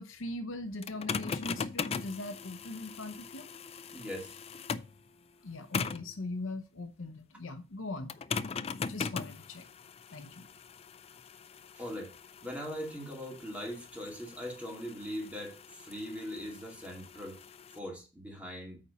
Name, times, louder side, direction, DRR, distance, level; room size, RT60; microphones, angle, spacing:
voice 1, 0.0-3.5 5.4-8.1 8.9-9.6 10.1-10.4, left 2 dB, 65° left, 0.8 m, -40 dB
sound 1, 0.8-5.0 5.7-6.1 8.1-17.8, left 5 dB, 30° left, 0.3 m, -40 dB
voice 2, 3.9-4.4 11.8-12.1 12.4-17.4 17.7-18.8, equal, 5° right, 2.4 m, -40 dB
8.8 x 4.1 x 5.5 m
head